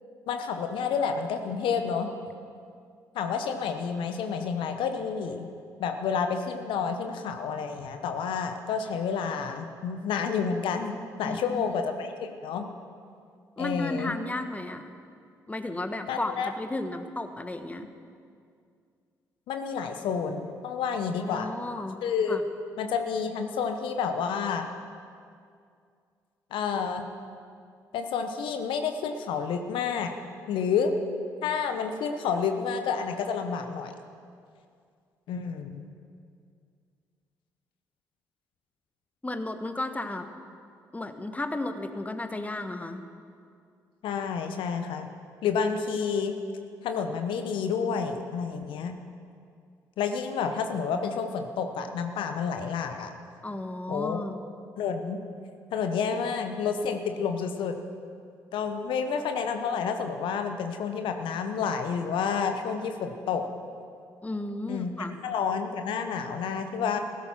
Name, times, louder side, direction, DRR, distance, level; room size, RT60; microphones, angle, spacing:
voice 1, 0.3-2.1 3.1-5.4 5.8-12.7 13.6-14.1 16.1-16.5 19.5-22.4 22.8-24.7 26.5-27.0 27.9-30.1 30.5-30.9 31.4-33.9 35.3-35.9 44.0-45.1 45.4-46.3 46.8-49.0 50.0-53.1 53.9-54.2 54.8-55.2 55.7-57.7 58.5-63.4 64.7-64.9 65.2-67.0, left 6 dB, 70° left, 6 dB, 1.0 m, -29 dB
voice 2, 11.2-11.7 13.6-14.9 15.5-17.9 21.2-22.0 22.3-22.4 39.2-40.3 40.9-43.0 53.4-54.4 64.2-65.2, left 2 dB, 15° left, 8 dB, 1.2 m, -34 dB
15.0 x 12.5 x 5.9 m, 2.3 s
hypercardioid pair, 45°, 9 cm